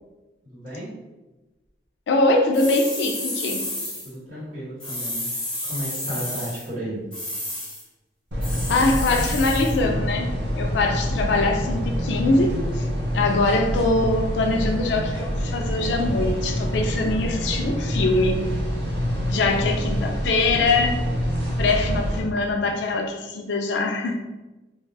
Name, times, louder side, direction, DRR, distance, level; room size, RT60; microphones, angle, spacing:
voice 1, 0.4-0.9 4.0-5.3 5.6-7.0 19.2-20.0, equal, 50° right, -9 dB, 1.3 m, -34 dB
voice 2, 2.1-3.6 8.7-12.9 13.1-18.5 19.3-20.9 21.6-24.2, left 2 dB, 75° left, 3 dB, 0.3 m, -23 dB
sound 1, 2.5-4.1 4.8-6.7 7.1-7.8 8.4-9.8, left 1 dB, 5° left, 0.9 m, -31 dB
sound 2, 8.3-22.2, equal, 75° right, 0.6 m, -26 dB
2.4 x 2.2 x 3.3 m, 1.1 s
head